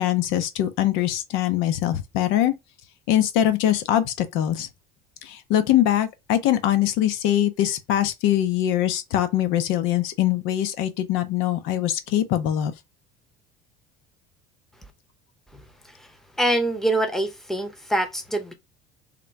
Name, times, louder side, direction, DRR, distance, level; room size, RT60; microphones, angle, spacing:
voice 1, 0.0-2.5 3.1-4.7 5.2-12.7, left 12 dB, 70° left, 0.7 m, -22 dB
voice 2, 16.4-18.5, right 1 dB, ahead, 0.9 m, -24 dB
3.6 x 2.2 x 4.4 m
supercardioid pair, 100°, 21 cm